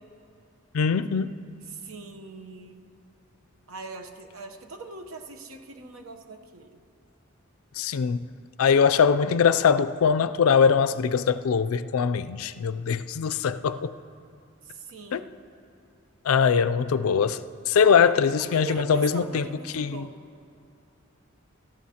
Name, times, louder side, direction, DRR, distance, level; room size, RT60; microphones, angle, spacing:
voice 1, 0.7-1.3 7.8-8.3 8.6-13.9 15.1-15.2 16.2-19.5 19.7-20.1, left 6 dB, 80° left, 13 dB, 0.4 m, -22 dB
voice 2, 1.7-2.8 3.7-6.8 14.6-15.3 18.4-20.1, right 3 dB, 75° right, 4 dB, 0.9 m, -41 dB
18.5 x 13.0 x 2.9 m, 2.5 s
head